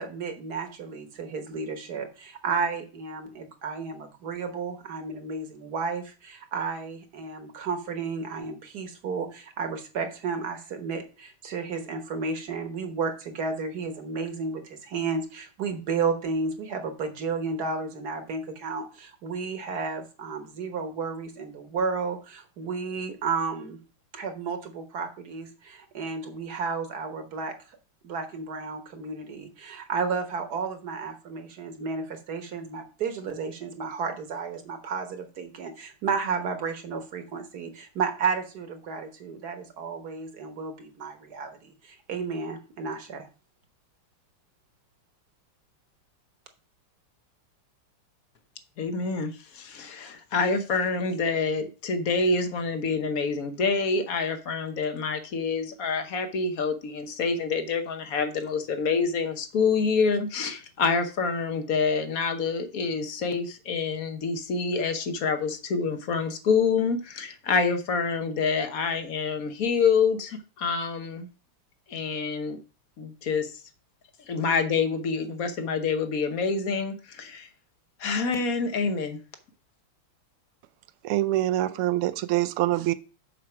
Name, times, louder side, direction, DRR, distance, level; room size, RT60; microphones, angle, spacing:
voice 1, 0.0-23.8 24.1-27.8 28.0-43.3, right 5 dB, 50° right, 7 dB, 1.5 m, -32 dB
voice 2, 48.8-71.3 71.9-72.6 73.0-73.5 74.3-77.5 78.0-79.2, left 5 dB, 50° left, 8 dB, 1.1 m, -27 dB
voice 3, 81.0-82.9, right 15 dB, 85° right, 12 dB, 1.5 m, -25 dB
7.7 x 4.9 x 5.9 m, 0.35 s
omnidirectional pair, 2.4 m